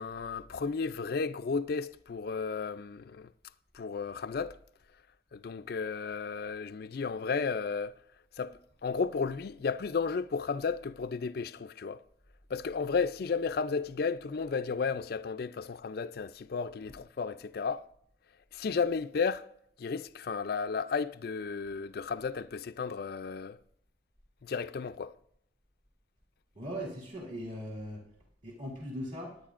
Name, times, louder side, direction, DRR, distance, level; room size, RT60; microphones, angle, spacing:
voice 1, 0.0-3.3 3.7-4.6 5.3-7.9 8.4-12.0 12.5-17.8 18.5-19.5 19.8-23.6 24.4-25.1, left 5 dB, 50° left, 0.4 m, -33 dB
voice 2, 26.6-28.0 28.4-29.3, equal, 40° right, 2.2 m, -39 dB
18.5 x 9.7 x 2.5 m
head